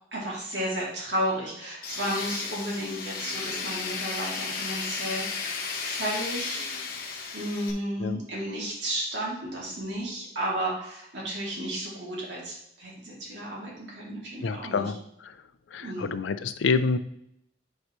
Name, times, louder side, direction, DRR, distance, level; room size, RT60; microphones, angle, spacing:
voice 1, 0.1-6.6 7.3-14.9 15.8-16.1, right 1 dB, 75° right, -4 dB, 2.6 m, -33 dB
Tools, 1.8-7.7, left 5 dB, 50° left, 1.1 m, -34 dB
voice 2, 14.4-15.0 15.2-15.3 15.7-17.0, left 4 dB, 90° left, 13 dB, 0.5 m, -27 dB
9.2 x 4.6 x 3.1 m, 0.75 s
head